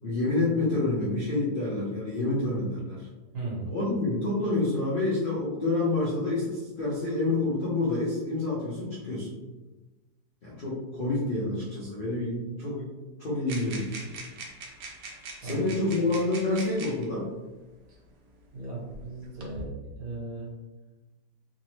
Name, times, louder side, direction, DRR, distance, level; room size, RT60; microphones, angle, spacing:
voice 1, 0.0-3.1 3.7-9.3 10.4-12.9 13.2-14.2 15.4-17.2, left 2 dB, 60° left, -7 dB, 0.5 m, -28 dB
voice 2, 3.3-3.7 15.4-15.6 18.5-19.7 20.0-20.5, right 2 dB, 60° right, -5 dB, 1.4 m, -36 dB
sound 1, 13.5-17.1 18.1-18.2 18.9-19.6, right 3 dB, 75° right, 1.2 m, -42 dB
3.5 x 2.0 x 3.0 m, 1.1 s
omnidirectional pair, 1.8 m